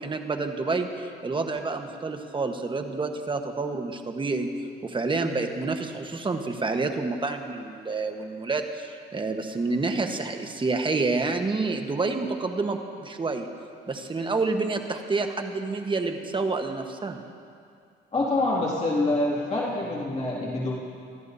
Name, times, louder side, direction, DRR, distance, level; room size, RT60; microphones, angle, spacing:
voice 1, 0.0-4.5 4.8-13.5 13.9-17.2, right 3 dB, 25° right, 5 dB, 1.2 m, -28 dB
voice 2, 18.1-20.7, left 2 dB, 35° left, -5 dB, 2.4 m, -26 dB
26.0 x 13.5 x 2.7 m, 2.4 s
cardioid pair, 90°, 20 cm